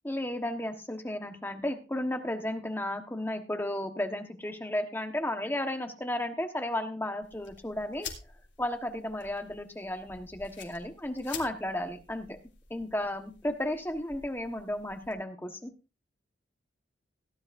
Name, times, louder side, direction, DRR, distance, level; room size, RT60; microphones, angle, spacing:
voice 1, 0.0-8.1 8.6-12.4 12.7-15.7, left 1 dB, 10° left, 6 dB, 1.3 m, -33 dB
sound 1, 7.2-15.1, left 7 dB, 80° left, 3.0 m, -48 dB
17.5 x 10.5 x 2.6 m, 0.30 s
head